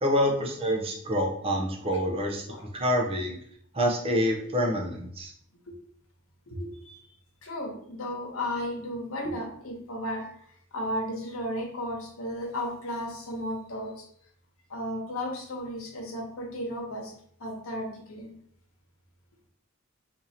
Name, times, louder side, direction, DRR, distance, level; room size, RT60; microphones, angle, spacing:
voice 1, 0.0-3.4 3.7-5.3, equal, 25° right, 0 dB, 0.6 m, -27 dB
voice 2, 6.5-6.9 7.4-10.3 10.7-14.0 14.7-17.1 17.4-18.3, left 1 dB, 90° left, 1 dB, 1.0 m, -34 dB
2.8 x 2.6 x 4.1 m, 0.64 s
head